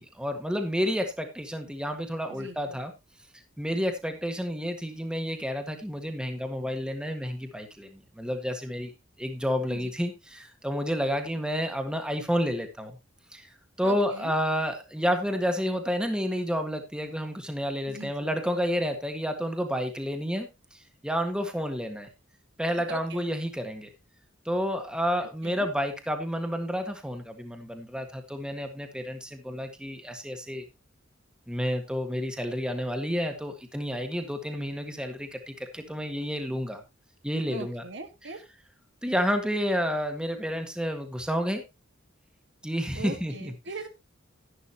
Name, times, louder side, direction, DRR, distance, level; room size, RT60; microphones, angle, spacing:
voice 1, 0.0-2.9 3.6-8.9 9.2-13.0 13.3-13.5 13.8-22.1 22.6-23.9 24.4-30.6 31.5-36.8 37.2-37.8 39.0-41.6 42.6-43.5, equal, 5° right, 6 dB, 1.7 m, -30 dB
voice 2, 2.3-2.8 9.7-9.9 13.8-14.3 17.9-18.3 22.7-23.2 25.4-25.7 37.5-38.4 42.9-43.9, right 3 dB, 60° right, 7 dB, 1.5 m, -40 dB
11.5 x 11.5 x 2.8 m, 0.23 s
head